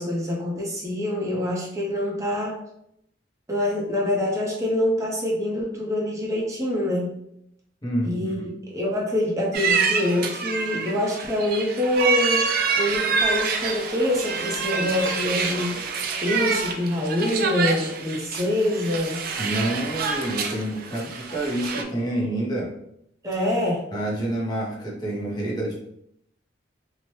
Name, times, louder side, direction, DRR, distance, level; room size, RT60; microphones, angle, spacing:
voice 1, 0.0-2.6 3.5-7.1 8.0-12.4 12.8-15.7 16.2-19.2 23.2-23.8, left 1 dB, 15° right, -3 dB, 0.6 m, -25 dB
voice 2, 7.8-8.3 19.4-22.7 23.9-25.7, right 1 dB, 20° left, -3 dB, 0.6 m, -28 dB
sound 1, 9.5-21.8, right 5 dB, 50° right, 0.3 m, -27 dB
2.8 x 2.1 x 3.0 m, 0.75 s
head